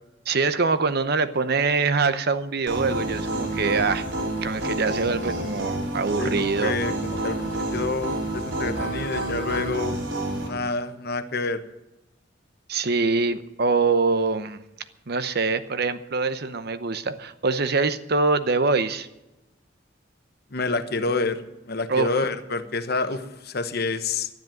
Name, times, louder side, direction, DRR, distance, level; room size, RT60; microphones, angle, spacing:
voice 1, 0.3-4.1 4.4-6.7 12.7-14.6 15.1-19.1 21.9-22.1, right 4 dB, 55° right, 11 dB, 0.8 m, -24 dB
sound 1, 2.7-10.5, right 1 dB, 85° right, 4.7 m, -29 dB
voice 2, 6.2-9.9 10.4-11.6 20.5-24.3, left 3 dB, 55° left, 10 dB, 1.1 m, -28 dB
12.0 x 10.5 x 9.2 m, 0.96 s
head